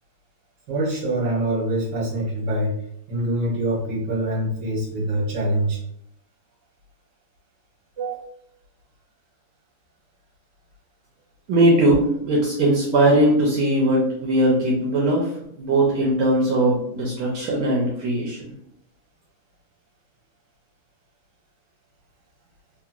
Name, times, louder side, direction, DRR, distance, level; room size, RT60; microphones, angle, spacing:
voice 1, 0.7-2.7 3.1-5.8 8.0-8.2, right 1 dB, 55° right, -4 dB, 1.7 m, -24 dB
voice 2, 11.5-15.3 15.6-18.4, right 1 dB, 75° right, -3 dB, 1.5 m, -19 dB
3.8 x 2.9 x 2.4 m, 0.71 s
omnidirectional pair, 2.4 m